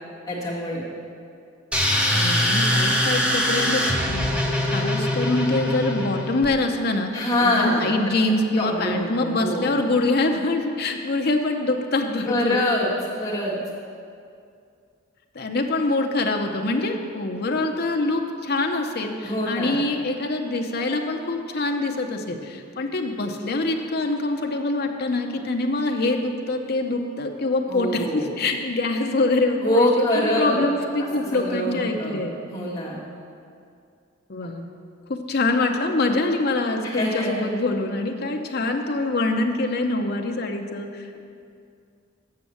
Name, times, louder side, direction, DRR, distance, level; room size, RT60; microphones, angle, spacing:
voice 1, 0.3-0.8 7.1-7.9 8.5-9.8 12.3-12.9 13.2-13.6 19.2-19.8 22.3-22.4 27.7-28.3 29.6-30.6 31.0-32.2 32.5-33.0 34.4-34.5 36.8-37.3, left 1 dB, 15° left, -7 dB, 1.9 m, -24 dB
sound 1, 1.7-6.5, left 1 dB, 5° right, 0.8 m, -22 dB
voice 2, 2.1-4.3 4.6-12.6 15.3-32.3 34.3-34.7 35.1-41.2, left 2 dB, 50° left, 3 dB, 0.7 m, -25 dB
7.7 x 6.2 x 7.1 m, 2.4 s
head